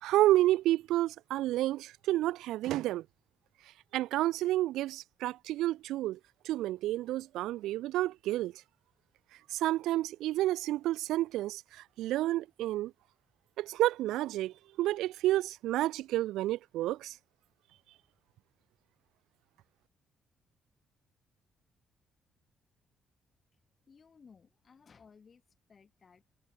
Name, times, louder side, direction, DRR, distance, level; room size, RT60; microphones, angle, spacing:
voice 1, 0.0-3.1 3.9-6.2 6.4-8.5 9.5-12.9 13.6-17.2, right 15 dB, 90° right, 0.3 m, -30 dB
voice 2, 23.5-25.4 25.7-26.2, left 5 dB, 40° left, 5.3 m, -59 dB
cardioid pair, 90°, 0 cm